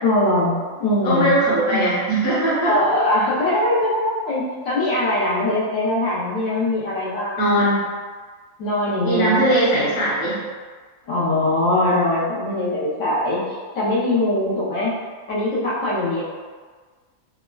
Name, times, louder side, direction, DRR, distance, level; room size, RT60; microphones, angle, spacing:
voice 1, 0.0-1.4 1.7-1.9 2.6-7.4 8.6-9.5 9.7-9.9 11.0-14.9 15.3-16.2, left 1 dB, 85° left, -8 dB, 1.0 m, -21 dB
voice 2, 1.0-2.7 7.4-7.9 9.0-10.4, right 1 dB, 60° left, -9 dB, 1.2 m, -19 dB
3.3 x 2.1 x 2.2 m, 1.5 s
omnidirectional pair, 1.3 m